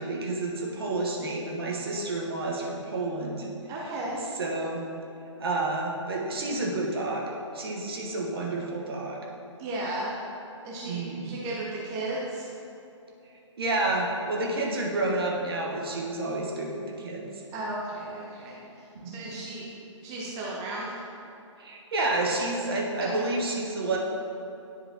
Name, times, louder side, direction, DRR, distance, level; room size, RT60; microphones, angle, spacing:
voice 1, 0.0-3.5 4.4-4.8 5.4-9.2 10.8-11.4 13.6-17.3 18.9-19.4 21.6-24.0, right 2 dB, 50° right, -2 dB, 1.3 m, -30 dB
voice 2, 3.7-4.2 9.6-10.1 10.6-12.5 17.5-18.9 19.1-19.7 20.0-21.0 22.4-22.5 23.0-23.3, right 2 dB, 20° right, -5 dB, 0.8 m, -35 dB
10.0 x 5.0 x 2.9 m, 2.9 s
figure-of-eight pair, 130°, 16 cm